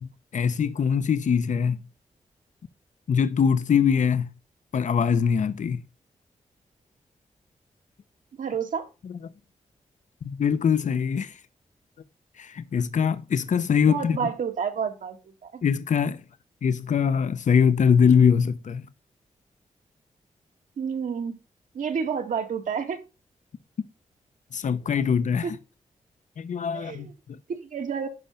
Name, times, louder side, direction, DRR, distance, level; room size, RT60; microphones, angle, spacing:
voice 1, 0.0-1.8 3.1-4.3 4.7-5.8 10.2-11.4 12.4-14.3 15.6-16.2 16.6-18.8 24.5-25.5 26.4-27.4, left 7 dB, 70° left, 0.9 m, -23 dB
voice 2, 8.4-8.9 13.8-15.6 20.8-21.4 21.7-23.0 25.4-25.5 26.7-27.1 27.5-28.1, right 6 dB, 80° right, 2.1 m, -30 dB
11.0 x 5.0 x 5.8 m
cardioid pair, 55°, 13 cm